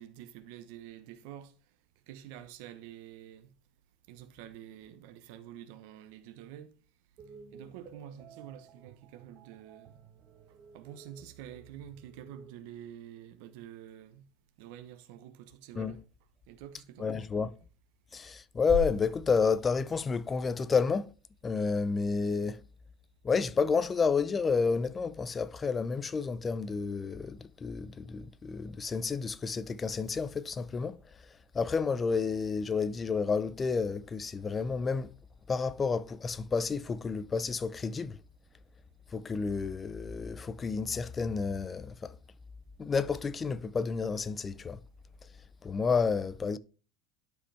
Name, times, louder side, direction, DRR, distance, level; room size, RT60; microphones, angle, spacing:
voice 1, 0.0-1.5 2.1-3.5 4.1-6.7 7.5-10.0 10.7-14.3 14.6-16.0 16.5-17.3, right 11 dB, 80° right, 1.0 m, -48 dB
sound 1, 7.2-12.5, right 5 dB, 40° right, 1.2 m, -54 dB
voice 2, 17.0-17.5 18.1-21.1 21.4-22.6 23.2-31.0 31.5-35.1 35.5-38.2 39.1-42.2 42.8-44.8 45.6-46.6, left 5 dB, 20° left, 0.5 m, -30 dB
sound 2, 18.7-20.8, equal, 10° right, 2.9 m, -38 dB
11.5 x 5.0 x 3.4 m
cardioid pair, 145°, 0 cm